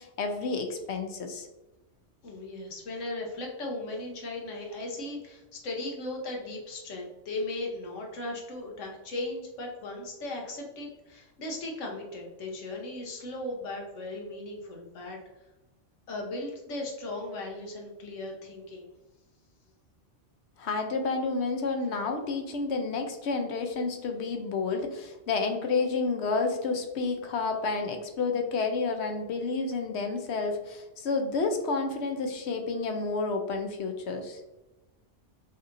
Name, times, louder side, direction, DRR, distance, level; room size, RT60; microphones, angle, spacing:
voice 1, 0.0-1.5 20.6-34.4, left 4 dB, 70° left, 5 dB, 0.9 m, -30 dB
voice 2, 2.2-15.2 16.1-18.9, left 2 dB, 90° left, 0 dB, 1.3 m, -37 dB
5.5 x 2.9 x 2.5 m, 1.0 s
omnidirectional pair, 1.2 m